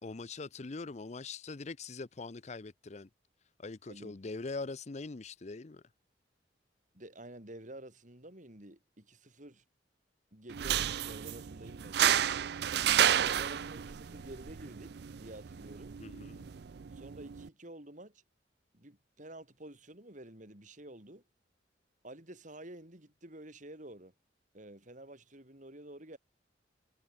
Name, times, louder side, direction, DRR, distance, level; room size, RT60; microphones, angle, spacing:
voice 1, 0.0-3.1 3.6-5.8 16.0-16.4, left 3 dB, 40° left, 0.6 m, -42 dB
voice 2, 6.9-9.6 10.3-12.1 13.2-16.0 16.9-18.2 18.7-21.2 22.0-24.1 24.5-26.2, right 1 dB, 45° right, 3.7 m, -50 dB
sound 1, 10.5-17.5, right 10 dB, 60° right, 0.4 m, -32 dB
head